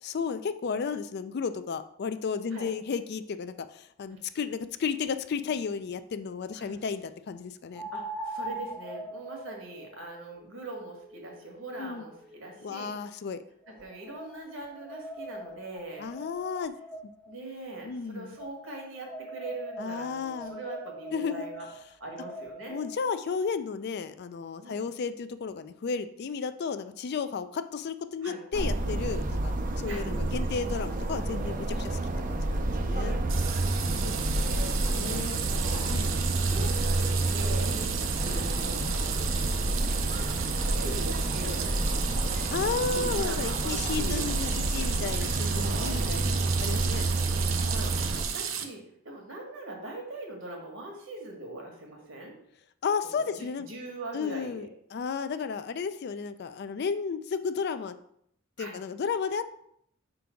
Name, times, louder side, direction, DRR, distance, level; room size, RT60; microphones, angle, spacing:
voice 1, 0.0-7.8 11.8-12.0 12.6-13.4 16.0-16.7 17.0-17.1 17.8-18.3 19.8-20.6 21.1-21.5 22.7-32.0 32.3-33.2 34.9-35.4 35.9-36.1 42.5-47.2 52.8-53.7 54.1-57.9 58.6-59.5, left 5 dB, 55° left, 11 dB, 0.4 m, -33 dB
sound 1, 7.7-12.9 13.6-17.4 18.4-23.0, right 1 dB, 5° left, 0.6 m, -42 dB
voice 2, 7.9-12.9 13.7-16.1 17.3-21.7 22.0-22.8 24.6-24.9 28.2-28.4 29.9-30.0 33.6-35.9 36.3-37.0 37.3-37.8 38.2-39.2 40.1-42.1 43.1-45.0 45.5-46.1 47.6-47.9 48.2-52.3 53.0-54.7 58.6-58.8, right 2 dB, 70° right, 1 dB, 1.7 m, -42 dB
sound 2, 28.5-48.2, right 2 dB, 45° right, 0.5 m, -29 dB
sound 3, 33.3-48.7, right 8 dB, 90° right, 0.7 m, -34 dB
4.7 x 3.9 x 5.7 m, 0.70 s
head